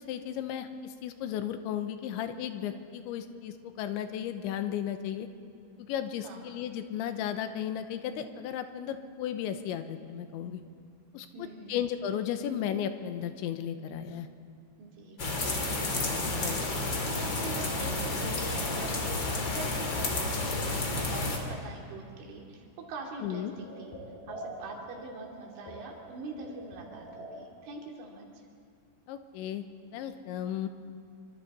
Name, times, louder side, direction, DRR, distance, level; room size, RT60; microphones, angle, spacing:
voice 1, 0.0-5.3 5.9-10.6 11.1-14.3 15.9-16.6 23.2-23.5 29.1-29.6 29.9-30.7, left 9 dB, 85° left, 8 dB, 3.2 m, -35 dB
voice 2, 11.3-11.8 14.8-15.6 16.4-16.7 17.1-23.9 24.3-28.3, right 3 dB, 85° right, 0 dB, 5.1 m, -43 dB
sound 1, 15.2-21.4, left 2 dB, 35° left, 2.1 m, -31 dB
sound 2, 15.9-19.1 19.4-20.1 20.4-20.5 20.8-21.9 22.2-22.5 22.9-23.0 23.2-27.4, right 1 dB, 55° left, 7.7 m, -48 dB
27.5 x 24.0 x 4.2 m, 2.3 s
omnidirectional pair, 5.4 m